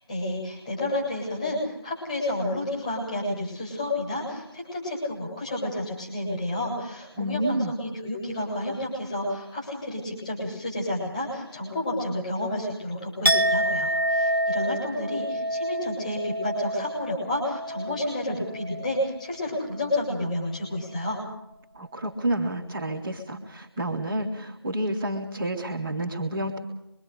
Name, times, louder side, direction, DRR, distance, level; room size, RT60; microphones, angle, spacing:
voice 1, 0.1-21.2, left 1 dB, 15° left, -3 dB, 7.8 m, -30 dB
voice 2, 7.2-7.7 21.7-26.6, right 1 dB, 5° right, -8 dB, 0.8 m, -29 dB
Chink clink, 13.2-19.2 19.5-19.9, equal, 60° right, 1.6 m, -28 dB
27.0 x 24.0 x 5.1 m, 0.81 s
figure-of-eight pair, 170°, 14 cm